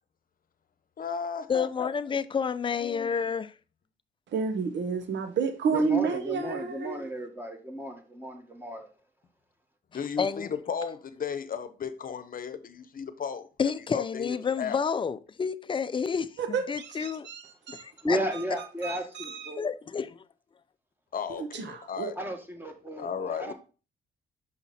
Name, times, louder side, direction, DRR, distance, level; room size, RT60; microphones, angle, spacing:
voice 1, 1.0-1.9 2.8-3.1 9.9-14.8 21.1-22.2 23.0-23.5, left 7 dB, 45° left, 0.9 m, -35 dB
voice 2, 1.5-3.5 10.2-10.5 13.6-17.3 17.7-18.2 19.6-20.2, left 6 dB, 25° left, 0.5 m, -30 dB
voice 3, 4.3-7.1 16.4-17.8 18.8-19.5 21.4-22.1, right 6 dB, 65° right, 1.0 m, -30 dB
voice 4, 5.7-8.9 18.0-19.7 22.2-23.5, equal, 10° right, 1.6 m, -33 dB
5.8 x 5.8 x 4.1 m
cardioid pair, 90°, 20 cm